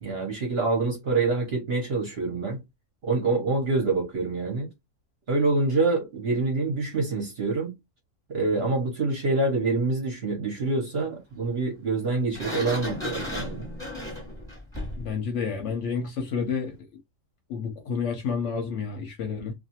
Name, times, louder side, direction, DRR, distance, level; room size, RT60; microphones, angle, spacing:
voice 1, 0.0-2.6 3.0-4.7 5.3-7.7 8.3-13.7, right 3 dB, 50° right, 0.8 m, -26 dB
Sliding door, 12.3-15.1, left 1 dB, 5° left, 0.9 m, -34 dB
voice 2, 15.0-16.8 17.5-19.5, left 6 dB, 60° left, 0.9 m, -30 dB
2.5 x 2.2 x 2.7 m
omnidirectional pair, 1.6 m